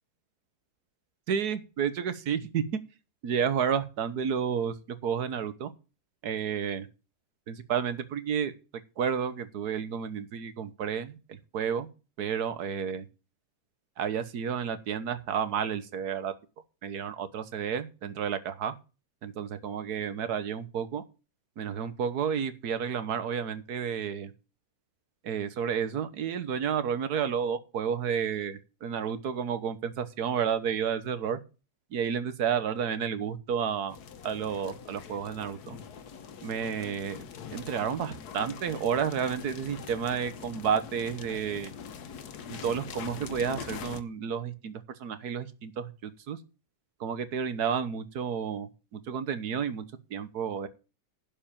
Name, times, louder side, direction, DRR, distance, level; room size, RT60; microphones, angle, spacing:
voice 1, 1.3-2.6 3.2-5.7 6.2-6.9 7.5-8.5 9.0-11.9 12.2-13.1 14.0-16.3 16.8-18.7 19.2-21.0 21.6-24.3 25.2-31.4 31.9-34.0 34.2-35.8 36.4-37.2 37.5-41.7 42.5-46.4 47.0-49.8 50.1-50.7, right 7 dB, 75° right, 12 dB, 1.6 m, -31 dB
sound 1, 33.9-44.0, left 7 dB, 80° left, 1.6 m, -43 dB
11.5 x 5.6 x 7.3 m, 0.32 s
omnidirectional pair, 1.7 m